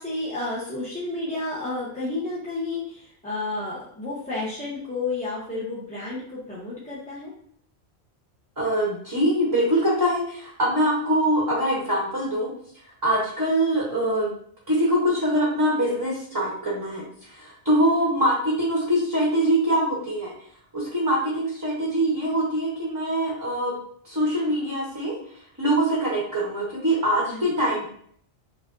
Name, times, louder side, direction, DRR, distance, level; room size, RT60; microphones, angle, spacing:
voice 1, 0.0-7.3 27.2-27.5, left 2 dB, 10° left, -8 dB, 0.7 m, -31 dB
voice 2, 8.6-12.5 13.0-14.3 14.7-20.3 20.7-23.7 24.0-25.1 25.6-27.9, right 1 dB, 20° right, -5 dB, 0.8 m, -23 dB
5.2 x 2.6 x 2.5 m, 0.63 s
omnidirectional pair, 1.1 m